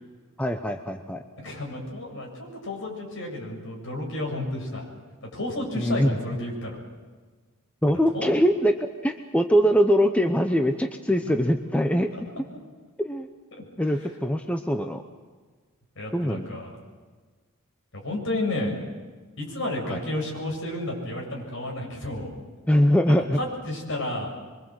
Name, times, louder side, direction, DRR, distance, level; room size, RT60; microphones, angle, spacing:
voice 1, 0.4-1.2 5.8-6.1 7.8-8.7 9.0-12.1 13.0-13.3 13.8-15.0 16.1-16.5 19.9-20.0 22.7-23.4, equal, 5° left, 6 dB, 0.8 m, -22 dB
voice 2, 1.4-4.8 5.2-6.8 7.9-8.3 13.8-14.1 16.0-16.8 17.9-18.7 19.4-22.3 23.3-24.3, left 1 dB, 60° left, 0 dB, 7.4 m, -32 dB
24.0 x 24.0 x 7.9 m, 1.4 s
head